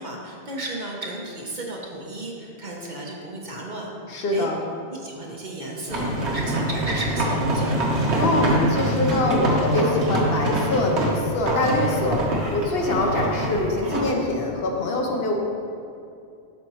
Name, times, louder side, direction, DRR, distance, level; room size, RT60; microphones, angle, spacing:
voice 1, 0.0-3.9 4.3-4.5 4.9-8.1, right 1 dB, 45° right, -2 dB, 1.0 m, -34 dB
voice 2, 4.1-4.6 8.2-12.2 12.5-15.4, left 2 dB, 65° left, 0 dB, 1.0 m, -24 dB
sound 1, 5.9-14.1, right 1 dB, 75° right, 1.4 m, -24 dB
12.0 x 4.4 x 3.0 m, 2.5 s
omnidirectional pair, 1.2 m